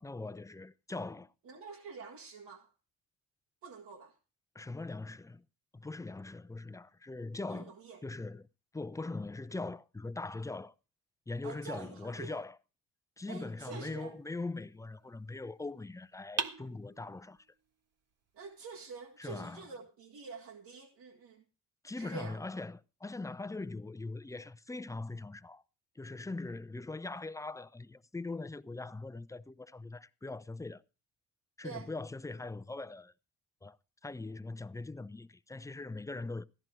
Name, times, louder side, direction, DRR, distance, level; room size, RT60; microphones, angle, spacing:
voice 1, 0.0-1.3 4.5-5.4 5.7-7.8 8.0-8.5 8.7-10.7 11.3-12.6 13.2-17.5 19.2-19.7 21.8-25.6 26.0-30.8 31.6-33.1 33.6-33.8 34.0-36.4, left 3 dB, 10° left, 0.6 m, -41 dB
voice 2, 1.5-2.7 3.6-4.1 7.5-8.0 11.4-12.4 13.3-14.2 18.3-21.4 22.0-22.4 31.6-31.9, right 4 dB, 80° right, 2.0 m, -47 dB
sound 1, 13.7-14.9 16.4-17.4, right 5 dB, 45° right, 1.6 m, -41 dB
15.5 x 10.5 x 4.6 m
cardioid pair, 90°, 35 cm